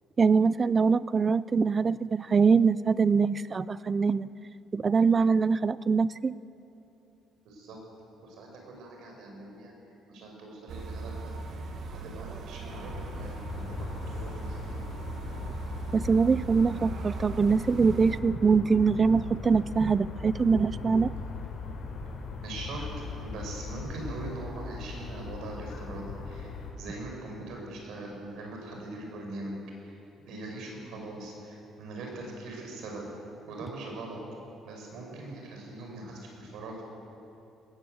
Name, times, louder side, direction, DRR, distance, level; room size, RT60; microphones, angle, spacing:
voice 1, 0.2-4.3 4.7-6.4 15.9-21.1, right 5 dB, 20° right, 17 dB, 0.4 m, -23 dB
voice 2, 7.4-7.8 8.2-9.7 10.1-11.8 12.0-13.4 13.8-14.9 22.4-22.9 23.2-29.5 29.8-33.1 33.5-34.2 34.6-36.8, right 2 dB, 65° right, 1 dB, 5.7 m, -41 dB
sound 1, 10.7-18.2, right 3 dB, 40° right, 1.3 m, -39 dB
sound 2, 12.6-26.7, left 4 dB, 60° left, 4.7 m, -39 dB
19.5 x 17.0 x 7.9 m, 2.8 s
cardioid pair, 175°, 0 cm